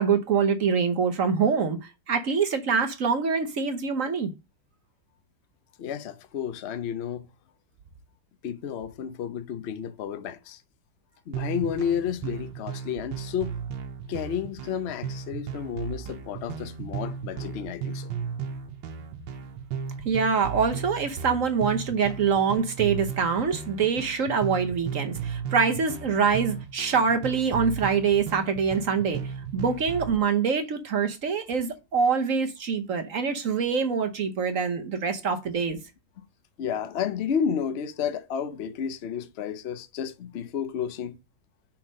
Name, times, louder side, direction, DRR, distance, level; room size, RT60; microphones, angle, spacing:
voice 1, 0.0-1.8 2.1-4.3 20.0-29.2 29.5-35.8, right 6 dB, 50° right, 1.1 m, -25 dB
voice 2, 5.8-7.3 8.4-10.6 11.3-13.6 14.1-18.1 36.2-36.3 36.6-41.2, left 8 dB, 55° left, 0.7 m, -31 dB
sound 1, 11.3-30.2, right 7 dB, 80° right, 1.7 m, -35 dB
5.8 x 4.5 x 6.2 m
omnidirectional pair, 2.1 m